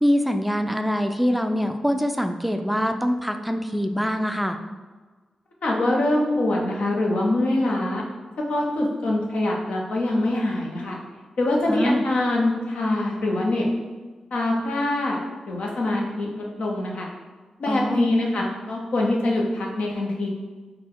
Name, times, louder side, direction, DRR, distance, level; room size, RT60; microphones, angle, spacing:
voice 1, 0.0-4.6 11.7-12.0 17.7-18.1, equal, 5° right, 6 dB, 0.3 m, -24 dB
voice 2, 5.6-8.0 8.5-11.0 11.4-13.7 14.3-15.2 15.5-16.3 16.6-17.1 17.6-20.3, left 1 dB, 75° left, -1 dB, 0.7 m, -24 dB
4.1 x 2.2 x 3.7 m, 1.4 s
cardioid pair, 45°, 2 cm